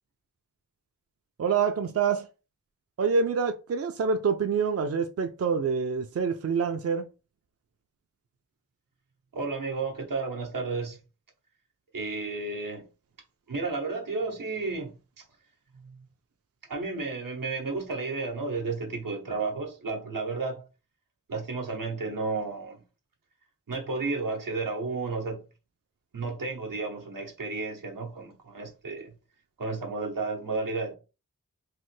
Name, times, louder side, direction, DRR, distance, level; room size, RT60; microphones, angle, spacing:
voice 1, 1.4-2.3 3.0-7.1, right 5 dB, 50° right, 0.4 m, -26 dB
voice 2, 9.3-11.0 11.9-12.9 13.5-15.2 15.7-16.1 16.7-20.7 21.3-22.8 23.7-25.4 26.1-29.1 29.6-30.9, right 3 dB, 85° right, 0.8 m, -32 dB
3.2 x 2.1 x 3.1 m
wide cardioid pair, 50°, 32 cm